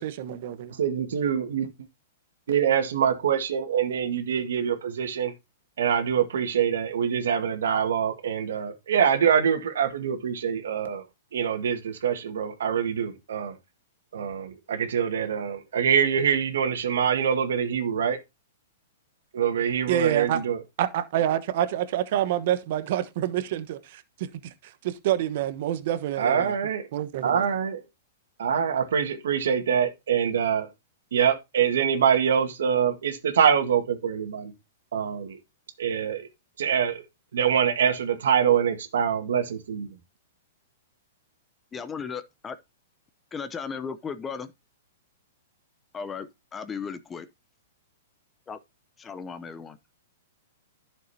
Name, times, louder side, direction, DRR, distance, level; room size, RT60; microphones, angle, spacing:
voice 1, 0.0-0.7 19.9-20.4 20.8-24.5 24.8-26.5 26.9-27.5, right 12 dB, 55° right, 1.1 m, -27 dB
voice 2, 0.7-1.7 2.5-5.3 5.8-11.0 11.3-13.5 14.1-18.2 19.3-20.6 26.2-26.8 27.2-27.8 28.4-30.7 31.1-34.5 34.9-35.4 35.8-36.3 36.6-37.0 37.3-39.9, right 8 dB, 80° right, 1.9 m, -24 dB
voice 3, 41.7-42.5 43.3-44.5 45.9-47.3 48.5-48.6 49.0-49.8, left 6 dB, 15° left, 0.7 m, -36 dB
11.5 x 6.6 x 2.8 m
hypercardioid pair, 140°, 0 cm